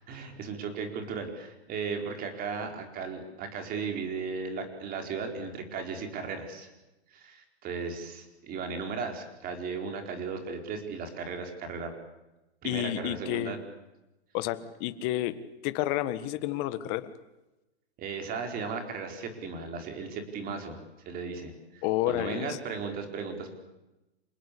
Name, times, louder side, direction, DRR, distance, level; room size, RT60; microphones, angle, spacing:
voice 1, 0.1-6.7 7.1-11.9 12.6-13.6 18.0-20.8 21.0-23.6, right 5 dB, 25° right, 5 dB, 4.8 m, -36 dB
voice 2, 12.6-13.5 14.3-15.4 15.6-17.1 21.8-22.6, left 14 dB, 35° left, 12 dB, 1.7 m, -30 dB
27.0 x 20.0 x 8.6 m, 1.0 s
hypercardioid pair, 145°, 33 cm